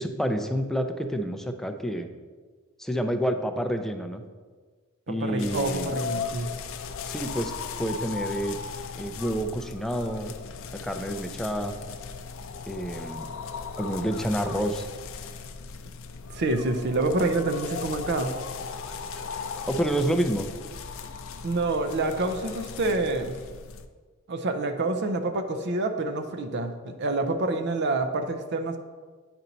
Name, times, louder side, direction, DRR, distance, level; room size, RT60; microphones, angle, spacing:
voice 1, 0.0-2.1 2.8-4.2 5.1-5.9 7.1-7.5 7.8-8.6 9.0-10.4 10.8-11.7 12.7-13.3 13.8-14.9 19.7-20.5, equal, ahead, 6 dB, 0.4 m, -28 dB
voice 2, 5.1-6.5 16.3-18.3 21.4-23.4 24.3-28.8, right 2 dB, 55° right, 7 dB, 0.5 m, -27 dB
sound 1, 5.4-23.9, left 5 dB, 65° left, 0.5 m, -37 dB
9.4 x 4.4 x 3.9 m, 1.4 s
head